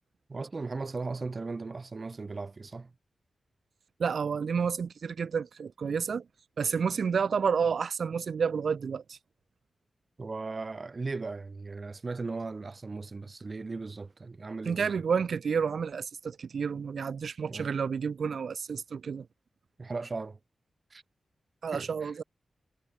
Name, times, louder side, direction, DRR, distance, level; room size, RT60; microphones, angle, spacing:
voice 1, 0.3-2.9 10.2-14.9 17.5-17.7 19.8-20.4 20.9-21.0 21.7-22.1, right 3 dB, 40° right, 1.1 m, -37 dB
voice 2, 4.0-6.3 6.6-9.2 14.7-19.3 21.6-22.2, right 6 dB, 75° right, 0.3 m, -30 dB
cardioid pair, 75°, 0 cm